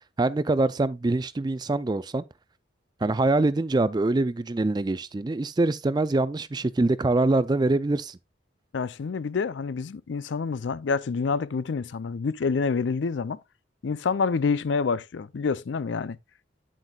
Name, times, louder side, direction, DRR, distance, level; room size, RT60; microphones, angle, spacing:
voice 1, 0.2-2.2 3.0-8.2, right 2 dB, 20° right, 0.4 m, -24 dB
voice 2, 8.7-13.4 13.8-16.2, left 5 dB, 80° left, 0.5 m, -27 dB
9.1 x 7.8 x 2.3 m
head